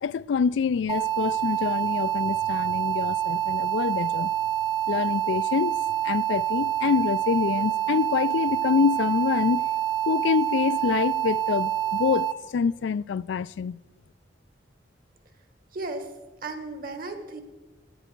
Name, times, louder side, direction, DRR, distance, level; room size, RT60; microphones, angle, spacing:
voice 1, 0.0-4.3 4.9-9.7 10.1-13.8, left 6 dB, 80° left, 0.3 m, -26 dB
sound 1, 0.9-12.3, right 12 dB, 25° right, 0.9 m, -27 dB
voice 2, 15.7-16.1 16.4-17.4, right 2 dB, 55° right, 1.6 m, -35 dB
16.0 x 11.0 x 4.5 m
head